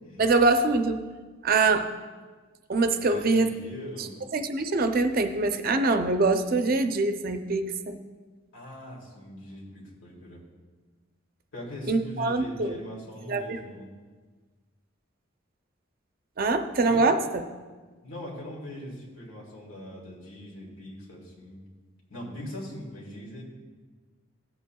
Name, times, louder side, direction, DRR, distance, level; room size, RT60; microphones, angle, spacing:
voice 1, 0.2-1.0 1.4-1.9 2.7-3.5 3.8-8.0 11.9-12.8 13.3-13.6 16.4-17.2, right 3 dB, 45° right, 7 dB, 0.5 m, -24 dB
voice 2, 2.9-4.1 8.5-10.4 11.5-13.9 16.8-17.0 18.0-21.6 22.1-23.4, left 1 dB, 80° left, -2 dB, 2.6 m, -41 dB
14.5 x 8.3 x 2.3 m, 1.4 s
head